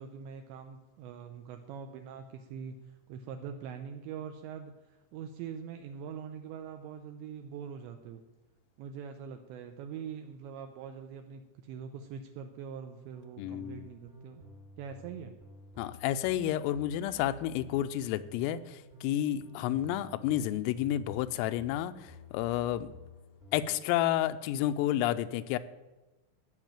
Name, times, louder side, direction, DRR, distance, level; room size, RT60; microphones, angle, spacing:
voice 1, 0.0-8.2 8.8-14.5 14.8-15.3, right 7 dB, 80° right, 6 dB, 2.7 m, -43 dB
sound 1, 13.1-23.7, left 2 dB, 25° right, 1.1 m, -53 dB
voice 2, 13.4-13.8 15.8-22.9 23.5-25.6, left 12 dB, 90° left, 10 dB, 3.3 m, -30 dB
14.5 x 6.1 x 8.9 m, 1.1 s
omnidirectional pair, 5.8 m